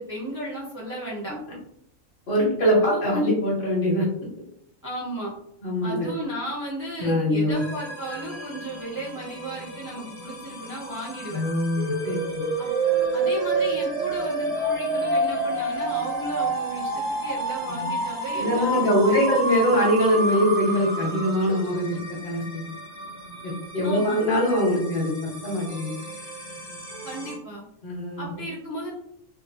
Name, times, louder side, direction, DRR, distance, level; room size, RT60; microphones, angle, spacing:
voice 1, 0.0-1.4 2.7-3.0 4.8-5.3 5.8-11.4 12.6-12.7 13.1-19.5 23.8-24.2 27.0-27.6 28.2-28.9, right 1 dB, 30° right, -5 dB, 0.4 m, -34 dB
voice 2, 2.3-4.0 5.6-6.1 7.0-7.6 11.3-12.5 17.7-17.9 18.3-22.6 23.4-25.1 25.4-25.9 27.8-28.3, equal, 50° left, -3 dB, 0.9 m, -23 dB
sound 1, 7.5-27.4, equal, 20° left, 0.5 m, -40 dB
sound 2, 11.8-21.6, right 2 dB, 85° right, 1.0 m, -27 dB
3.1 x 2.0 x 2.4 m, 0.71 s
omnidirectional pair, 1.4 m